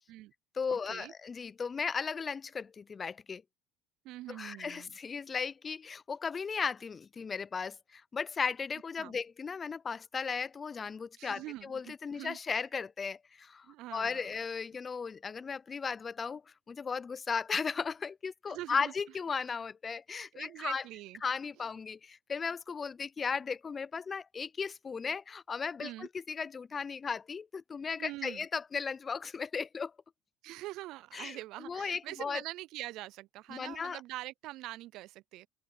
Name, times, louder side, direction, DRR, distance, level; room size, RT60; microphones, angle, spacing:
voice 1, 0.5-3.4 4.3-13.7 13.9-16.4 16.7-20.8 21.2-29.9 31.1-31.4 31.7-32.4 33.5-34.0, left 5 dB, 30° left, 0.5 m, -36 dB
voice 2, 4.0-5.0 9.0-9.2 11.2-12.4 13.6-14.3 18.5-18.9 20.3-21.2 25.8-26.1 28.0-28.5 30.4-35.5, right 17 dB, 65° right, 0.4 m, -44 dB
hypercardioid pair, 75°, 0 cm